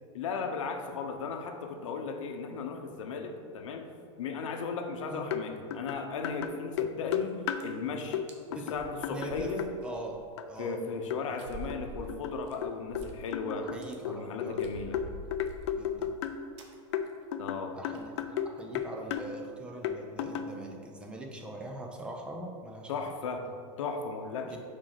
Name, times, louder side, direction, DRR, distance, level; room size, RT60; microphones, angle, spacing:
voice 1, 0.1-3.9 4.2-8.2 8.5-9.7 10.6-13.7 14.0-15.0 17.4-17.7 22.9-24.6, left 4 dB, 85° left, 5 dB, 0.8 m, -36 dB
sound 1, 5.3-5.4 5.7-7.7 8.1-8.3 8.5-9.7 10.4-10.5 11.1-11.2 11.7-13.1 13.3-16.4 16.9-18.5 18.8-19.3 19.8-20.6, left 9 dB, 60° left, 0.5 m, -34 dB
sound 2, 7.2-7.3 7.6-7.9 8.3-8.4 8.7-10.2 10.6-10.7 11.4-13.4 13.7-14.0 14.5-16.3 16.6-16.7 17.1-17.3 17.5-17.6 17.9-18.2 18.6-18.9, right 1 dB, 65° right, 0.9 m, -46 dB
voice 2, 9.1-9.5 9.8-10.2 10.5-10.8 13.6-14.6 15.7-16.1 17.7-22.9 24.4-24.6, right 1 dB, 5° right, 1 dB, 0.4 m, -42 dB
5.2 x 4.2 x 5.7 m, 2.2 s
supercardioid pair, 170°, 16 cm